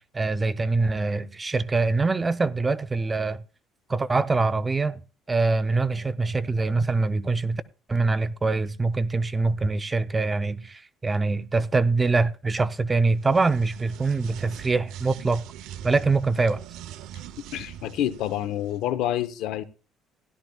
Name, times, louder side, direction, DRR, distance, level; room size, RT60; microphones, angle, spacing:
voice 1, 0.0-3.4 3.9-5.0 5.3-7.6 7.9-15.4 15.8-16.6, right 3 dB, 15° right, 0.5 m, -24 dB
sound 1, 13.1-18.8, right 10 dB, 80° right, 0.6 m, -42 dB
voice 2, 17.5-19.6, left 12 dB, 75° left, 0.8 m, -28 dB
16.5 x 11.5 x 2.3 m
cardioid pair, 155°, 0 cm